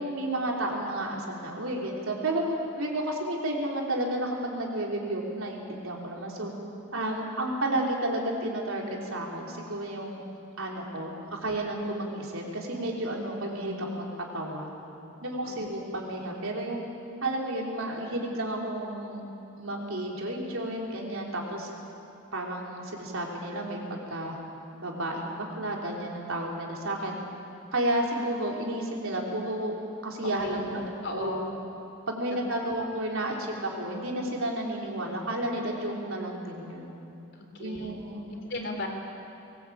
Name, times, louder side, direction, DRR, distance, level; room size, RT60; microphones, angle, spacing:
voice 1, 0.0-2.4 2.8-6.5 6.9-10.2 10.6-14.1 14.3-14.7 15.2-16.8 17.2-19.2 19.6-21.7 22.3-24.4 24.7-27.2 27.7-29.7 30.0-31.4 32.1-36.9 37.6-38.2, right 1 dB, 70° right, -1 dB, 3.9 m, -32 dB
voice 2, 30.2-30.7 31.0-31.5 32.6-32.8 37.5-37.9 38.3-38.9, left 1 dB, 55° left, 3 dB, 3.3 m, -37 dB
22.0 x 19.5 x 8.8 m, 2.7 s
head